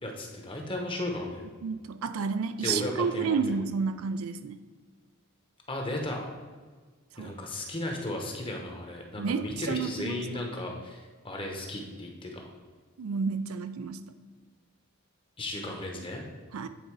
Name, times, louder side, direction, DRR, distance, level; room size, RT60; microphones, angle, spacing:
voice 1, 0.0-1.5 2.6-3.4 5.7-6.3 7.2-12.4 15.4-16.2, left 1 dB, 25° left, 1 dB, 1.0 m, -35 dB
voice 2, 1.6-4.6 7.2-7.3 9.2-10.2 13.0-14.1 16.5-16.7, right 5 dB, 75° right, 11 dB, 0.4 m, -30 dB
8.9 x 3.9 x 4.6 m, 1.5 s
head